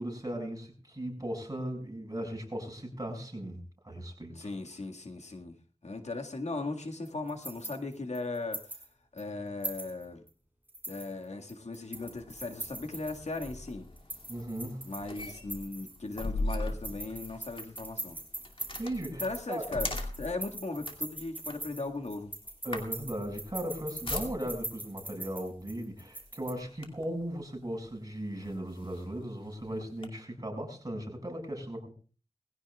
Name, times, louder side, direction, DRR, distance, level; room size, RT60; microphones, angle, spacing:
voice 1, 0.0-4.3 14.3-14.9 18.8-19.6 22.6-31.9, right 1 dB, 35° right, 3 dB, 6.3 m, -37 dB
voice 2, 4.4-5.6 5.8-8.9 9.1-10.2 10.9-13.9 14.8-18.2 19.2-19.9 20.2-22.3, left 3 dB, 80° left, 4 dB, 1.9 m, -38 dB
sound 1, 7.0-8.9 9.2-9.3 9.6-10.3 10.7-13.5 14.0-16.4 16.7-26.5, right 1 dB, 15° right, 5.4 m, -42 dB
sound 2, 11.9-24.8 25.6-25.8 26.2-27.2 27.9-28.0 28.4-30.1, left 2 dB, 50° left, 2.5 m, -40 dB
21.5 x 16.0 x 2.4 m, 0.37 s
wide cardioid pair, 60°, 11 cm